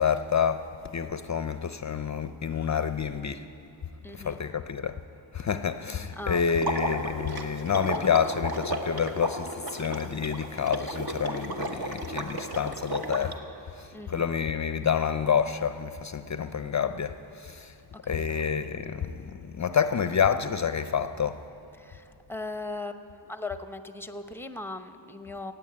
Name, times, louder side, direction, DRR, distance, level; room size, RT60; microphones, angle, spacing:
voice 1, 0.0-3.5 4.1-4.9 5.3-13.4 13.7-17.8 18.1-21.4, left 7 dB, 40° left, 0.5 m, -28 dB
voice 2, 4.0-4.4 6.2-6.7 13.9-14.3 18.0-18.4 21.8-25.5, left 2 dB, 5° left, 0.7 m, -39 dB
Water / Liquid, 6.6-13.3, right 1 dB, 50° right, 1.4 m, -33 dB
15.0 x 9.1 x 8.7 m
cardioid pair, 85°, 47 cm